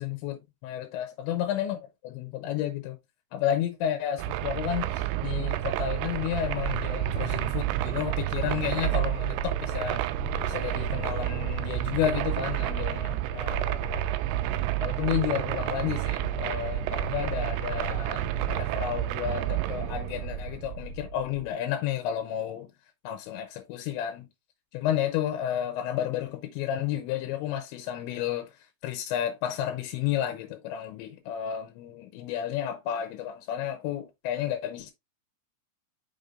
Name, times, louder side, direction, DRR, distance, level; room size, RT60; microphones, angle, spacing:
voice 1, 0.0-3.0 3.3-10.0 10.4-14.1 14.8-22.7 23.0-24.3 24.7-28.5 28.8-34.9, left 11 dB, 90° left, 3.1 m, -31 dB
sound 1, 4.2-21.5, right 12 dB, 85° right, 2.3 m, -30 dB
6.6 x 5.8 x 2.6 m
omnidirectional pair, 5.1 m